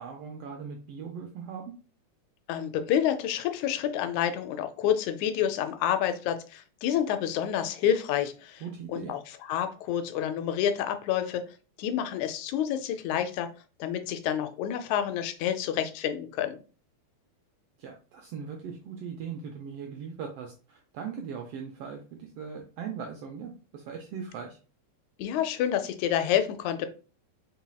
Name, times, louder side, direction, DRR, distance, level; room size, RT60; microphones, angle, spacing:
voice 1, 0.0-1.6 8.6-9.1 17.8-24.6, right 6 dB, 80° right, 3 dB, 1.4 m, -39 dB
voice 2, 2.5-8.6 8.9-9.2 9.5-11.4 11.8-13.5 13.8-16.6 25.2-26.9, left 10 dB, 85° left, 9 dB, 1.9 m, -28 dB
4.3 x 4.0 x 2.2 m, 0.36 s
omnidirectional pair, 3.3 m